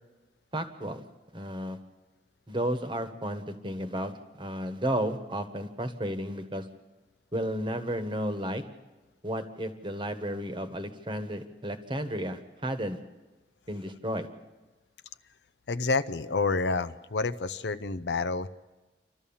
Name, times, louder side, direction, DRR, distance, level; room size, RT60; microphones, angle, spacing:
voice 1, 0.5-1.0 1.3-1.8 2.5-6.7 7.3-8.6 9.2-13.0 13.7-14.3, right 1 dB, 25° right, 8 dB, 1.3 m, -33 dB
voice 2, 15.7-18.5, left 3 dB, 65° left, 11 dB, 0.6 m, -29 dB
29.0 x 12.5 x 7.2 m, 1.2 s
head